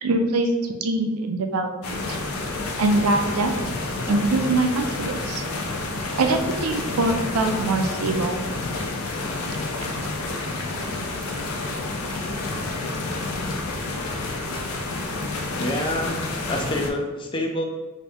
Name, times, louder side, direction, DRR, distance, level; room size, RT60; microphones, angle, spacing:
voice 1, 0.0-2.0 2.8-3.5 4.1-5.4 6.2-8.4, right 2 dB, 85° right, 5 dB, 0.5 m, -23 dB
sound 1, 1.8-16.9, left 2 dB, 80° left, 0.5 m, -29 dB
voice 2, 15.6-16.2 16.5-17.6, left 1 dB, 25° left, 2 dB, 0.4 m, -27 dB
2.7 x 2.6 x 3.3 m, 1.2 s
head